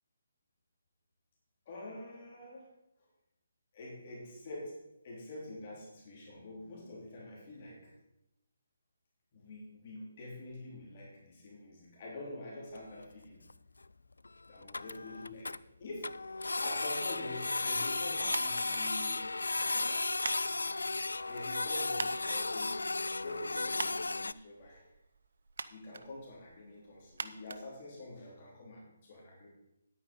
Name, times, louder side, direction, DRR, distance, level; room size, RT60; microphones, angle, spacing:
voice 1, 1.6-2.7 3.7-4.8 5.0-7.9 9.3-13.4 14.5-15.5 15.8-16.2 16.5-19.3 19.7-20.1 21.0-24.8 25.7-29.5, left 1 dB, 40° left, -3 dB, 3.3 m, -46 dB
Printer, 12.7-12.8 13.0-13.1 13.5-13.6 13.8-13.9 14.2-14.3 14.6-15.6 16.0-24.3, left 3 dB, 85° left, 0.3 m, -34 dB
sound 1, 18.3-28.5, right 4 dB, 65° right, 0.7 m, -46 dB
10.5 x 9.1 x 5.2 m, 0.86 s
figure-of-eight pair, 150°, 0 cm